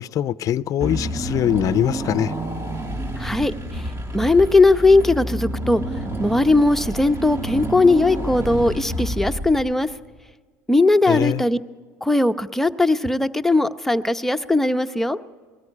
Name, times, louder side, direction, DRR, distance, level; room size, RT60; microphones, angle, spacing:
voice 1, 0.0-2.3 11.1-11.4, left 11 dB, 45° left, 0.5 m, -22 dB
Car / Engine, 0.8-10.0, right 1 dB, 30° right, 2.1 m, -29 dB
voice 2, 3.2-5.8 6.2-9.9 10.7-11.6 12.0-15.2, left 2 dB, 5° left, 0.8 m, -19 dB
21.0 x 14.0 x 9.8 m
supercardioid pair, 95°, 8 cm